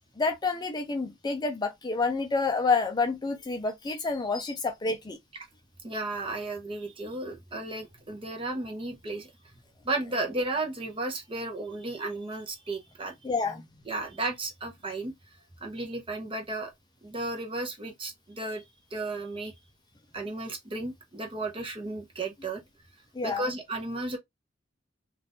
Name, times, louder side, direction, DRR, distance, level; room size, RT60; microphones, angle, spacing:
voice 1, 0.2-5.2 13.2-13.6 23.1-23.4, left 4 dB, 20° left, 0.5 m, -28 dB
voice 2, 5.8-9.3 9.8-13.1 13.9-15.1 15.6-16.7 17.0-18.6 18.9-19.5 20.1-22.6 23.2-24.2, right 2 dB, 30° right, 0.8 m, -34 dB
2.5 x 2.4 x 3.5 m
head